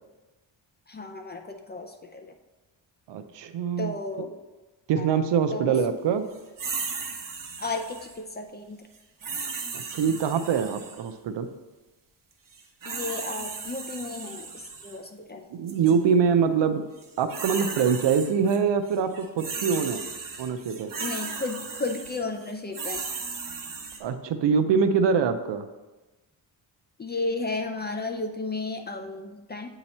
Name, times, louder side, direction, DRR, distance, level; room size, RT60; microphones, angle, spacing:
voice 1, 0.9-2.3 3.8-4.3 5.0-5.1 5.5-5.8 7.6-8.8 12.8-15.5 21.0-23.0 27.0-29.7, left 3 dB, 25° left, 4 dB, 0.4 m, -33 dB
voice 2, 3.1-4.3 4.9-6.2 9.7-11.5 15.5-16.9 17.2-20.0 20.4-20.9 24.0-25.6, right 6 dB, 65° right, 9 dB, 0.6 m, -24 dB
sound 1, 6.6-8.2 9.2-11.1 12.5-15.0 15.7-15.9 17.0-18.6 18.9-24.0, right 5 dB, 45° right, 1.0 m, -36 dB
8.7 x 2.9 x 4.2 m, 1.1 s
cardioid pair, 95°, 47 cm